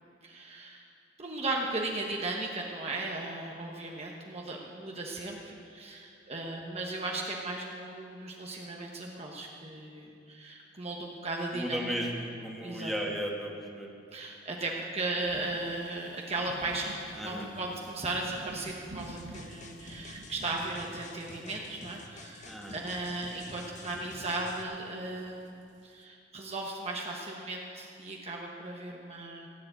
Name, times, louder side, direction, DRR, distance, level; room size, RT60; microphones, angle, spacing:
voice 1, 0.2-0.8 1.2-11.9 12.6-12.9 14.1-29.5, right 2 dB, 35° right, -1 dB, 1.2 m, -36 dB
voice 2, 11.5-13.9 17.1-17.5 22.4-22.8, equal, ahead, -2 dB, 2.1 m, -35 dB
sound 1, 15.2-26.0, right 2 dB, 75° right, 0.9 m, -50 dB
sound 2, 19.0-24.6, left 2 dB, 40° left, 1.1 m, -49 dB
17.0 x 7.7 x 9.1 m, 2.5 s
head